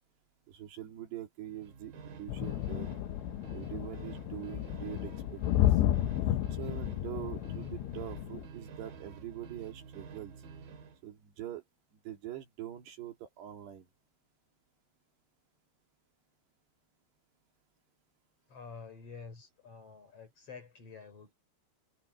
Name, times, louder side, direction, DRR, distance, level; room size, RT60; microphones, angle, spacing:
voice 1, 0.5-2.9 3.5-5.8 6.5-10.4 11.0-11.6 11.9-13.9, right 12 dB, 75° right, 5.0 m, -44 dB
sound 1, 1.4-11.0, right 5 dB, 60° right, 3.8 m, -49 dB
sound 2, 2.3-8.5, left 13 dB, 85° left, 3.1 m, -32 dB
voice 2, 18.5-21.3, left 5 dB, 35° left, 4.4 m, -49 dB
omnidirectional pair, 4.9 m